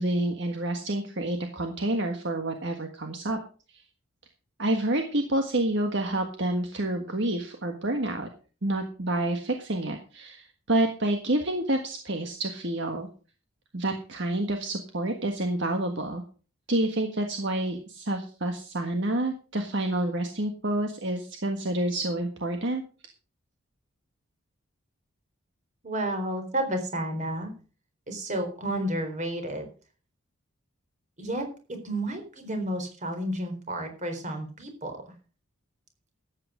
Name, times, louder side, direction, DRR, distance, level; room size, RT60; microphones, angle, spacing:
voice 1, 0.0-3.4 3.7-3.8 4.6-8.3 8.6-13.1 13.7-16.2 16.7-22.8, right 1 dB, 60° right, 4 dB, 1.6 m, -28 dB
voice 2, 25.8-27.5 28.1-29.7 31.2-35.0, right 1 dB, 35° right, 5 dB, 4.0 m, -31 dB
13.5 x 8.9 x 5.0 m, 0.38 s
head